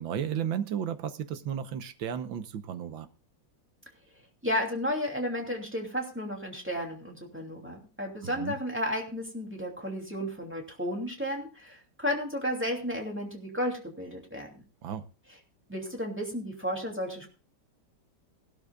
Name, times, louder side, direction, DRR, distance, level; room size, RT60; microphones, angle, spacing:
voice 1, 0.0-3.1 8.2-8.6 14.8-15.0, right 8 dB, 70° right, 1.7 m, -33 dB
voice 2, 4.4-14.5 15.7-17.3, equal, 5° right, 2.7 m, -33 dB
19.5 x 12.5 x 2.4 m
omnidirectional pair, 2.3 m